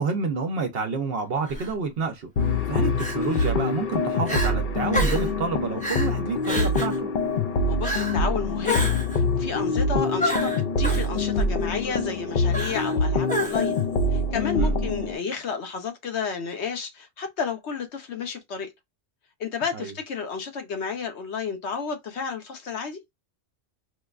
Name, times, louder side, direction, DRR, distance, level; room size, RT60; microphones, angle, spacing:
voice 1, 0.0-2.3 2.7-7.1 14.6-14.7 19.7-19.9, right 4 dB, 60° right, 0.9 m, -29 dB
Crying sobbing, 1.5-1.7 3.0-3.5 3.9-4.0 4.3-4.5 4.9-5.3 5.8-6.1 6.4-7.0 7.8-8.2 8.6-9.2 10.2-11.1 12.5-13.0 13.3-13.8, equal, 10° left, 0.7 m, -29 dB
sound 1, 2.4-15.2, left 3 dB, 55° left, 0.7 m, -25 dB
voice 2, 7.6-8.9 9.1-13.8 14.1-18.7 19.4-23.0, left 6 dB, 75° left, 1.1 m, -31 dB
4.4 x 2.2 x 2.3 m
omnidirectional pair, 1.2 m